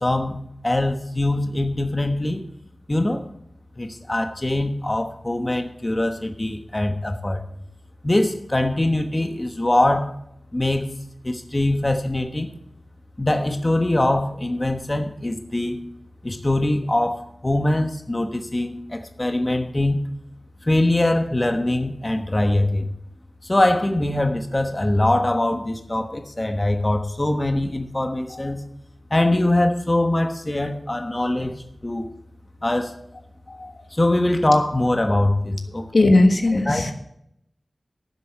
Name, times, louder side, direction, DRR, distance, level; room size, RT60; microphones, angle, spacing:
voice 1, 0.0-2.5 2.9-3.2 3.8-7.4 8.0-10.1 10.5-10.9 11.2-12.5 13.2-15.8 16.2-20.0 20.6-22.9 23.4-28.6 29.1-31.5 31.8-32.1 32.6-33.0 33.9-35.9 36.7-36.9, left 1 dB, 35° left, 6 dB, 1.1 m, -22 dB
voice 2, 33.5-33.8 35.9-36.9, left 2 dB, 70° left, 5 dB, 1.4 m, -19 dB
12.0 x 7.1 x 6.6 m, 0.74 s
cardioid pair, 40°, 0 cm